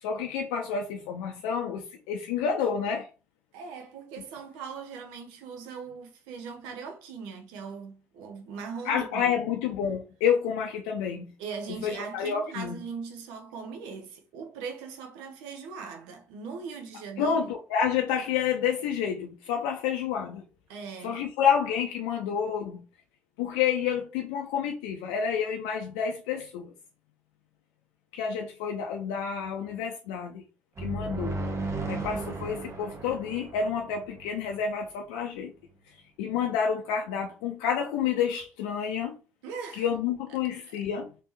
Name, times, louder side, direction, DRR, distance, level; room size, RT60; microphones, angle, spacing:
voice 1, 0.0-3.1 8.9-11.2 11.8-12.8 17.2-20.4 21.0-22.8 23.4-26.7 28.1-30.4 30.8-31.4 31.9-35.5 36.2-39.2 39.8-41.1, left 7 dB, 80° left, 0.4 m, -29 dB
voice 2, 3.5-9.5 11.4-17.5 20.7-21.2 39.4-39.9 40.3-40.4, right 5 dB, 80° right, 0.7 m, -40 dB
sound 1, 30.8-34.5, right 2 dB, 40° right, 0.9 m, -35 dB
3.4 x 2.9 x 3.0 m
hypercardioid pair, 50°, 8 cm